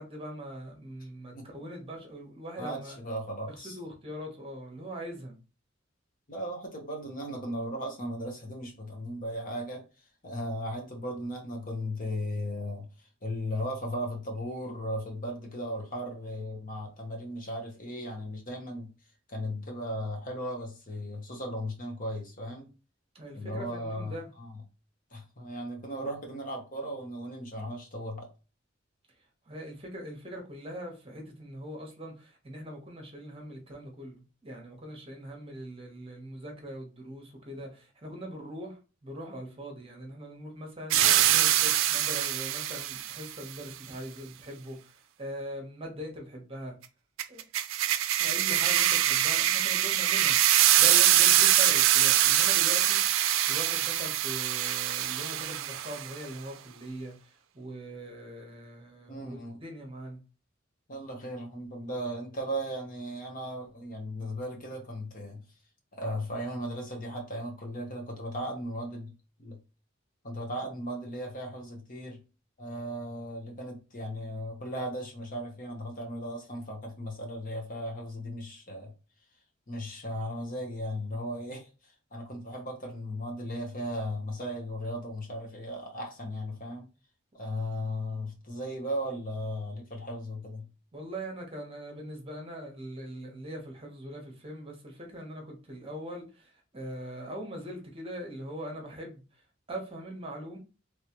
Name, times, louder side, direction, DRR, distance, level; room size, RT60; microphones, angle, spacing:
voice 1, 0.0-3.0 3.5-5.4 23.1-24.3 29.5-46.7 47.3-47.4 48.2-50.4 50.8-53.0 53.5-60.2 90.9-99.2 99.7-100.6, equal, 30° right, 1.0 m, -41 dB
voice 2, 2.6-3.8 6.3-9.8 10.2-18.9 19.3-22.7 23.3-24.5 25.1-28.3 59.1-59.6 60.9-65.4 65.9-69.1 69.4-69.6 70.2-72.2 72.6-78.9 79.7-86.8 87.3-90.7, equal, 45° left, 1.0 m, -36 dB
sound 1, 40.9-43.2 47.2-56.1, right 12 dB, 90° right, 0.4 m, -24 dB
3.2 x 3.1 x 2.9 m
head